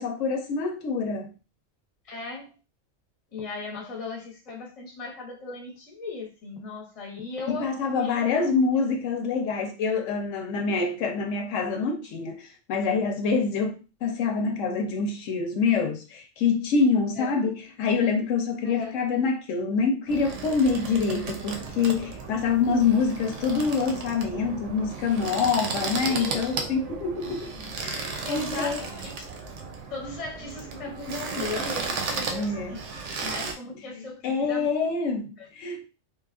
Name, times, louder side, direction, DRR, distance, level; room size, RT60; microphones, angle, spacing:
voice 1, 0.0-1.3 7.5-27.5 27.8-28.8 32.3-32.7 34.2-35.8, left 5 dB, 80° left, 0.9 m, -26 dB
voice 2, 2.1-2.5 3.3-8.2 17.1-17.3 18.6-19.0 26.0-26.8 27.2-27.7 28.2-29.3 29.9-32.8 33.1-34.7 35.4-35.5, left 3 dB, 35° left, 0.7 m, -37 dB
sound 1, 20.1-33.5, right 4 dB, 75° right, 0.9 m, -35 dB
3.0 x 2.3 x 2.4 m
omnidirectional pair, 1.3 m